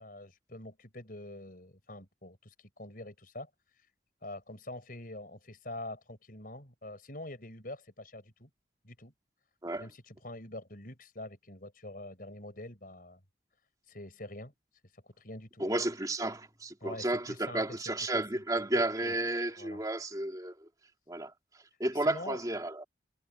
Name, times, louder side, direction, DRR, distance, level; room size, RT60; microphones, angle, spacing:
voice 1, 0.0-3.5 3.8-3.9 4.2-8.5 8.8-9.1 9.7-13.2 13.9-14.5 14.9-15.7 16.8-18.4 18.7-19.1 19.6-19.8 21.9-22.4, left 1 dB, 50° left, 6.2 m, -45 dB
voice 2, 15.6-20.5 21.1-21.3 21.8-22.8, right 1 dB, 20° right, 2.8 m, -32 dB
head